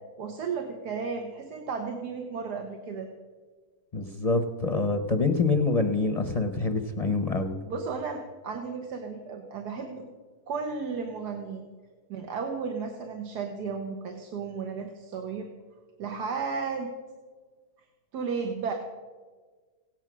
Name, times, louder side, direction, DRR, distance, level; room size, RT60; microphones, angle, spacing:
voice 1, 0.2-3.1 7.7-10.0 10.5-11.6 12.1-15.5 16.0-16.9 18.1-18.7, right 5 dB, 85° right, 4 dB, 1.6 m, -34 dB
voice 2, 3.9-7.6, left 3 dB, 35° left, 6 dB, 0.6 m, -26 dB
16.5 x 8.9 x 6.1 m, 1.5 s
omnidirectional pair, 1.7 m